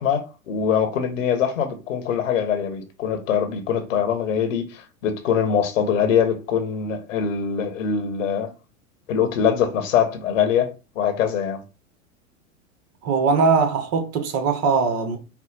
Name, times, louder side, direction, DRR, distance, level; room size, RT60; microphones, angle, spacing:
voice 1, 0.0-8.5 9.1-11.6, left 8 dB, 65° left, 1.2 m, -23 dB
voice 2, 13.0-15.2, right 5 dB, 40° right, 1.2 m, -20 dB
4.7 x 2.2 x 3.9 m
hypercardioid pair, 95°, 40 cm